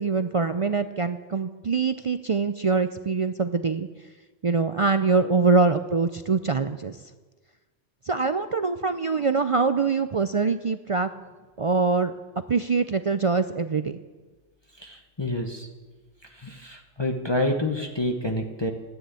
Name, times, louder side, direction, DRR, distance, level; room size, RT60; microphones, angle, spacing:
voice 1, 0.0-3.9 4.4-7.0 8.1-11.1 11.6-12.1 12.5-13.9, right 4 dB, 50° right, 9 dB, 0.4 m, -24 dB
voice 2, 14.8-15.7 16.3-18.7, left 1 dB, 25° left, 2 dB, 1.1 m, -28 dB
14.0 x 10.0 x 8.2 m, 1.3 s
omnidirectional pair, 1.2 m